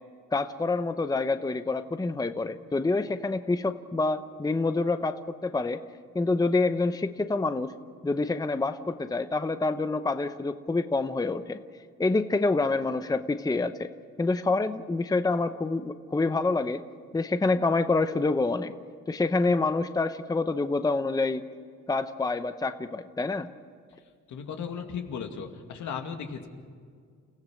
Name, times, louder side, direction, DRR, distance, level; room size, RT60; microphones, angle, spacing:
voice 1, 0.3-5.8 6.1-7.7 8.0-11.6 12.0-13.9 14.2-16.8 17.1-18.7 19.1-21.4 21.9-23.5, left 3 dB, 10° left, 10 dB, 0.8 m, -27 dB
voice 2, 24.3-26.5, left 6 dB, 75° left, 4 dB, 2.3 m, -36 dB
29.5 x 15.5 x 6.5 m, 2.1 s
cardioid pair, 90°, 30 cm